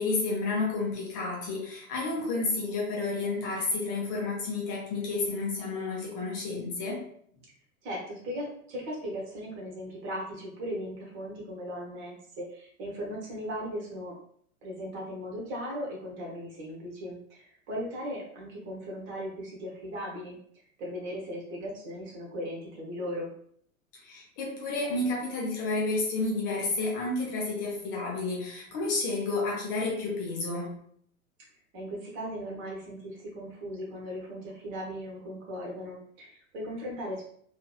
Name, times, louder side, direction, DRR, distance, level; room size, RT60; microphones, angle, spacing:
voice 1, 0.0-7.0 24.0-30.8, left 3 dB, 15° left, -2 dB, 0.4 m, -31 dB
voice 2, 7.8-14.1 14.6-20.4 20.8-23.3 31.7-37.2, equal, 25° right, -2 dB, 0.9 m, -37 dB
2.7 x 2.5 x 2.3 m, 0.64 s
figure-of-eight pair, 100°, 43 cm